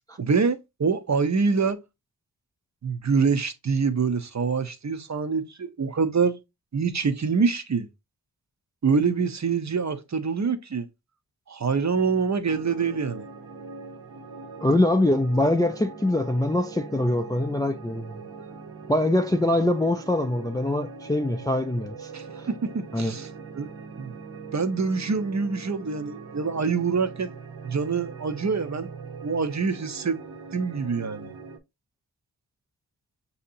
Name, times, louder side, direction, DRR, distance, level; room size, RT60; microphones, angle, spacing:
voice 1, 0.2-1.8 2.8-6.4 6.7-7.9 8.8-10.9 11.5-13.3 22.1-23.3 23.5-23.7 24.0-24.1 24.5-27.3 27.6-28.9 29.2-30.2 30.5-31.3, right 5 dB, 40° right, 0.6 m, -25 dB
sound 1, 12.4-31.6, right 4 dB, 60° right, 0.9 m, -42 dB
voice 2, 14.6-18.2 18.9-22.1 22.4-22.5 22.9-23.1, left 1 dB, 10° left, 0.3 m, -23 dB
6.4 x 2.8 x 2.6 m
wide cardioid pair, 75°, 44 cm